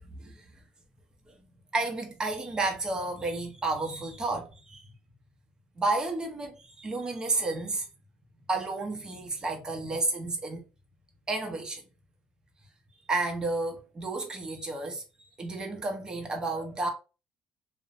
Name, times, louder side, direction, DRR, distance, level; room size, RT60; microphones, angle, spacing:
voice 1, 0.1-0.4 1.7-4.9 5.8-7.9 8.5-10.6 11.3-11.8 13.1-15.0 15.4-16.9, right 2 dB, 25° right, 0.7 m, -31 dB
2.6 x 2.1 x 2.5 m
cardioid pair, 100°, 3 cm